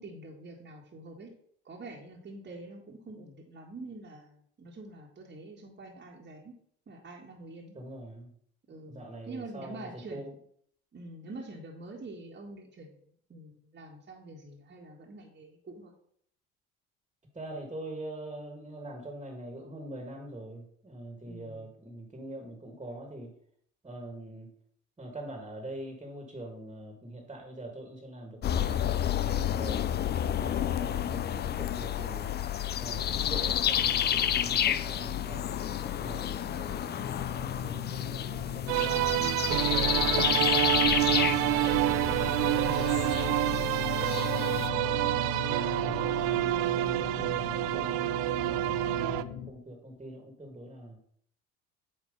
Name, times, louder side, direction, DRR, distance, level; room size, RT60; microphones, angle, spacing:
voice 1, 0.0-1.3 1.6-6.5 6.9-7.8 8.7-10.4 10.9-13.0 13.3-15.9 21.2-21.7 37.7-38.2, right 2 dB, 30° right, -1 dB, 1.6 m, -46 dB
voice 2, 7.7-8.3 8.8-10.3 17.3-23.4 23.8-24.5 25.0-30.0 30.4-32.4 32.8-37.0 37.3-39.0 39.6-40.6 46.6-51.0, right 1 dB, 15° right, 2 dB, 1.8 m, -44 dB
sound 1, 28.4-44.7, left 10 dB, 30° left, 0.4 m, -30 dB
sound 2, 36.9-49.5, left 9 dB, 80° left, 0.8 m, -38 dB
sound 3, 38.7-49.2, right 16 dB, 75° right, 0.5 m, -28 dB
8.6 x 3.0 x 5.2 m, 0.65 s
hypercardioid pair, 75°, 35 cm